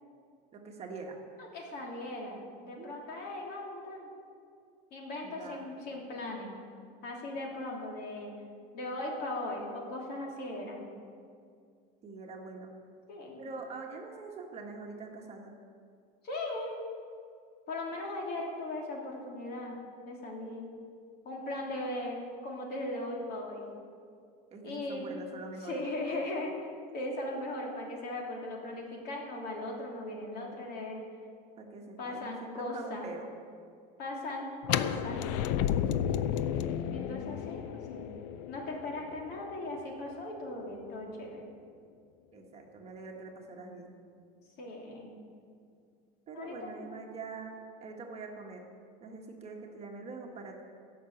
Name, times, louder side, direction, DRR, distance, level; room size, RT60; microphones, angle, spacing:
voice 1, 0.5-1.2 2.8-3.0 5.2-5.7 12.0-12.7 13.4-15.5 24.5-25.8 31.6-33.3 35.8-36.5 42.3-44.0 46.3-48.7 49.0-50.6, right 3 dB, 30° right, 1 dB, 1.5 m, -44 dB
voice 2, 1.4-4.1 4.9-6.5 7.0-8.3 8.7-10.9 13.1-13.4 16.2-16.8 17.7-19.8 20.0-20.8 21.2-23.7 24.6-25.1 25.6-31.0 32.0-33.1 34.0-35.3 36.9-38.1 38.5-41.4 44.6-45.1 46.3-46.9, left 1 dB, 50° left, -1 dB, 3.0 m, -38 dB
sound 1, 34.6-40.5, left 9 dB, 75° left, 0.6 m, -33 dB
16.5 x 6.1 x 7.8 m, 2.3 s
cardioid pair, 145°, 20 cm